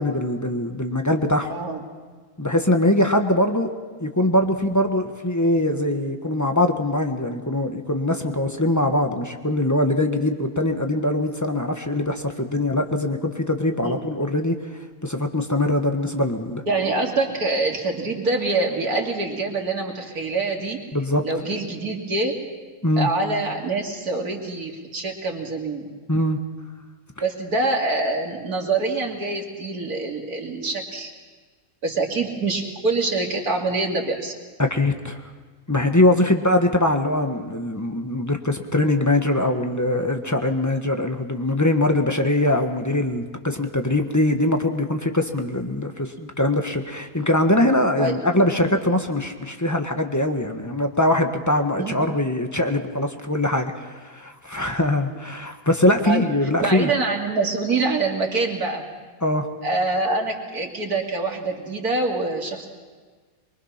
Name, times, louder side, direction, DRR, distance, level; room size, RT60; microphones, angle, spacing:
voice 1, 0.0-1.5 2.4-3.7 4.0-14.5 15.0-16.6 20.9-21.2 22.8-23.1 26.1-26.4 34.6-35.2 35.7-56.9 59.2-59.5, left 1 dB, 10° left, 5 dB, 1.3 m, -22 dB
voice 2, 1.5-1.8 13.8-14.0 16.7-20.8 21.2-22.4 23.0-25.9 27.2-31.1 31.8-34.3 48.0-48.2 51.8-52.1 56.0-56.2 56.6-58.9 59.6-62.7, right 3 dB, 85° right, 0 dB, 3.2 m, -25 dB
23.5 x 23.5 x 5.8 m, 1.5 s
omnidirectional pair, 1.6 m